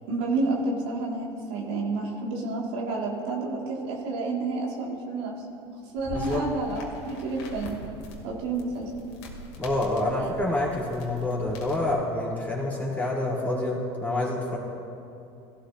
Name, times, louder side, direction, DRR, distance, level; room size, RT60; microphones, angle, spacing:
voice 1, 0.1-5.3 5.9-7.8 8.2-9.0 10.2-10.3, right 3 dB, 75° right, -2 dB, 1.9 m, -30 dB
sound 1, 6.0-12.0, left 1 dB, 85° left, 2.4 m, -42 dB
voice 2, 9.6-14.6, left 2 dB, 10° left, -5 dB, 3.2 m, -27 dB
17.5 x 12.5 x 2.6 m, 2.7 s
hypercardioid pair, 90°, 14 cm